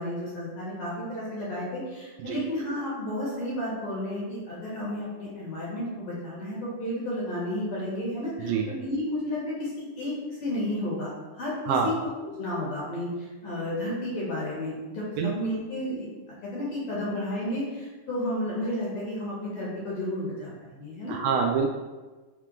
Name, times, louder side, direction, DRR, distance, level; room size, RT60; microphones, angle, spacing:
voice 1, 0.0-11.9 12.4-16.1 16.4-21.1, left 1 dB, 50° left, -7 dB, 2.5 m, -32 dB
voice 2, 21.1-21.7, right 6 dB, 80° right, 2 dB, 1.8 m, -25 dB
5.6 x 3.9 x 4.5 m, 1.2 s
omnidirectional pair, 3.6 m